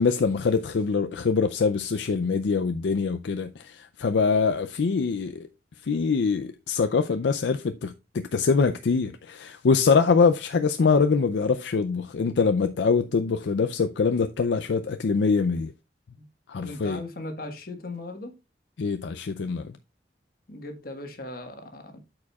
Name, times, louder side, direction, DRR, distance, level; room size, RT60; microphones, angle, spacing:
voice 1, 0.0-5.5 5.8-15.7 16.5-17.0 18.8-19.8, left 5 dB, 75° left, 0.4 m, -24 dB
voice 2, 16.6-18.4 20.5-22.0, left 2 dB, 55° left, 1.4 m, -38 dB
12.5 x 4.9 x 2.3 m
head